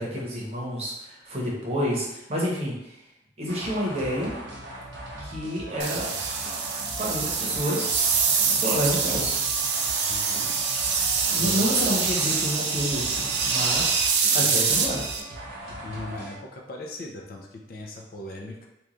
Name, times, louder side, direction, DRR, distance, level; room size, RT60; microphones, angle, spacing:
voice 1, 0.0-3.0 3.4-4.4 5.2-6.1 6.9-8.0 8.5-9.4 11.3-15.1, equal, 35° right, -4 dB, 0.8 m, -29 dB
sound 1, 3.5-16.4, right 1 dB, 85° right, 1.0 m, -39 dB
sound 2, 5.8-15.2, right 5 dB, 65° right, 0.4 m, -25 dB
voice 2, 10.1-10.6 11.3-11.8 14.4-14.5 15.7-18.7, left 2 dB, 50° left, 0 dB, 0.4 m, -39 dB
3.0 x 2.3 x 3.8 m, 0.90 s
head